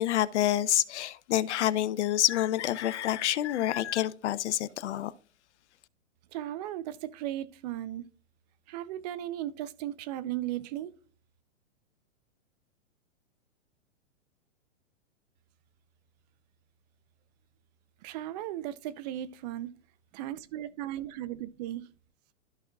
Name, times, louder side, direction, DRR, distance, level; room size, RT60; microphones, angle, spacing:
voice 1, 0.0-5.1, left 13 dB, 65° left, 0.7 m, -27 dB
voice 2, 6.3-8.0 8.7-10.9 18.0-19.7 20.1-21.9, right 13 dB, 35° right, 0.6 m, -36 dB
13.5 x 5.5 x 2.3 m
hypercardioid pair, 135°, 38 cm